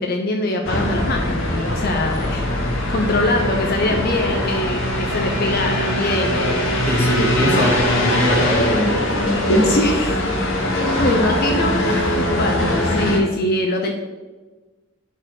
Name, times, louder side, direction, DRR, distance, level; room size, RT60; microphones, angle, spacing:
voice 1, 0.0-6.7 7.5-7.7 9.6-10.2 11.0-13.9, left 2 dB, 45° left, 2 dB, 0.6 m, -23 dB
sound 1, 0.6-13.2, left 1 dB, 70° left, 1.2 m, -21 dB
voice 2, 6.9-9.1, equal, 10° left, -1 dB, 1.2 m, -21 dB
6.6 x 4.1 x 6.2 m, 1.2 s
head